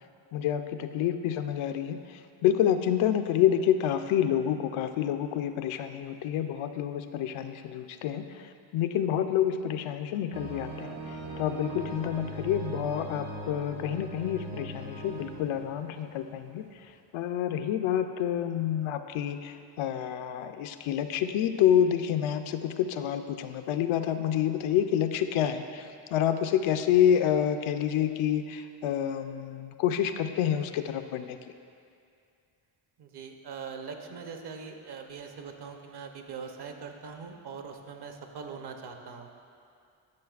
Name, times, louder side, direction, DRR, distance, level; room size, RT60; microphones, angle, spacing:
voice 1, 0.3-2.0 2.4-8.4 8.7-11.0 11.4-16.6 17.1-31.4, left 10 dB, 80° left, 8 dB, 0.6 m, -28 dB
sound 1, 10.3-16.5 16.8-16.9, right 1 dB, 90° right, 1.2 m, -40 dB
voice 2, 33.0-39.3, right 5 dB, 55° right, 4 dB, 0.8 m, -42 dB
11.5 x 6.2 x 2.4 m, 2.4 s
cardioid pair, 110°, 48 cm